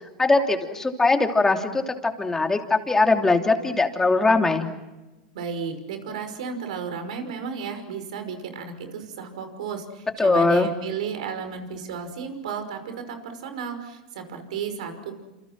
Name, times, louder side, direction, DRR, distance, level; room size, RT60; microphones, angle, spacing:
voice 1, 0.2-4.7 10.2-10.7, left 3 dB, 10° left, 4 dB, 3.0 m, -21 dB
voice 2, 5.3-15.1, right 6 dB, 80° right, 7 dB, 5.7 m, -33 dB
29.0 x 28.0 x 6.1 m, 1.1 s
supercardioid pair, 120°, 4 cm